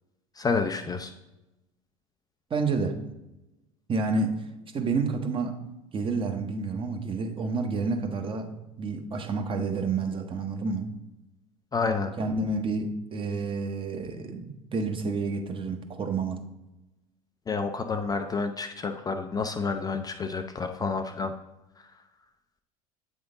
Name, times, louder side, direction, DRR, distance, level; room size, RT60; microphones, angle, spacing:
voice 1, 0.4-1.1 11.7-12.1 17.5-21.3, left 4 dB, 20° left, 6 dB, 0.4 m, -29 dB
voice 2, 2.5-3.0 3.9-4.3 4.7-5.6 5.9-8.5 8.8-10.9 12.2-16.4, right 4 dB, 30° right, 5 dB, 0.9 m, -29 dB
7.7 x 3.7 x 3.8 m, 0.99 s
hypercardioid pair, 75°, 18 cm